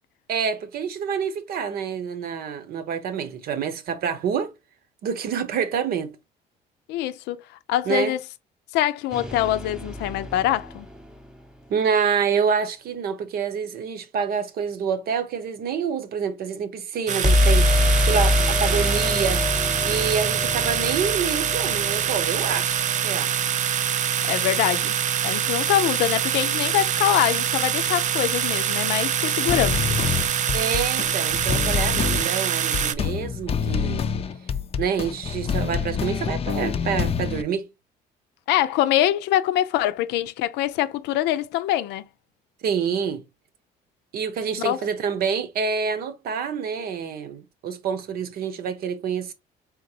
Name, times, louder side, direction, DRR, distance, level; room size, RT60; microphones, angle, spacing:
voice 1, 0.3-4.5 5.0-6.1 7.9-8.2 11.7-17.8 18.1-19.5 19.8-22.8 23.0-23.5 30.5-34.0 34.8-37.7 42.6-43.2 44.1-49.3, right 6 dB, 65° right, 0.9 m, -27 dB
voice 2, 6.9-7.4 7.7-8.2 8.7-10.9 24.2-24.9 25.2-30.0 38.5-42.0 44.6-44.8, left 13 dB, 85° left, 0.5 m, -24 dB
sound 1, 9.1-11.1 17.2-23.0, left 1 dB, 5° right, 0.7 m, -24 dB
sound 2, 17.1-32.9, right 9 dB, 45° right, 0.5 m, -25 dB
sound 3, 29.5-37.4, left 7 dB, 35° left, 0.5 m, -26 dB
4.0 x 3.7 x 2.8 m
cardioid pair, 110°, 17 cm